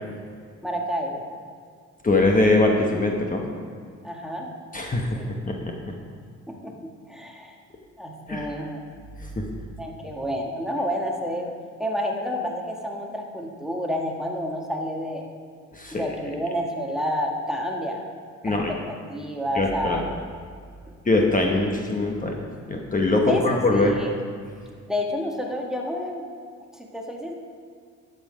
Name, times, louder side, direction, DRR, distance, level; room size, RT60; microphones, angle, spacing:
voice 1, 0.6-1.3 4.0-4.5 5.1-5.3 6.5-7.5 8.0-8.8 9.8-11.5 11.8-15.2 15.9-18.0 18.4-18.6 19.1-20.0 20.9-21.0 23.3-24.1 24.9-26.3 26.8-27.3, equal, ahead, 0 dB, 1.5 m, -29 dB
voice 2, 2.0-3.4 4.7-5.7 8.3-8.5 9.2-9.5 15.7-16.1 18.4-18.7 19.5-20.0 21.0-22.4 22.7-24.0, left 2 dB, 25° left, 1 dB, 1.2 m, -22 dB
11.5 x 7.9 x 5.1 m, 2.1 s
cardioid pair, 90°, 30 cm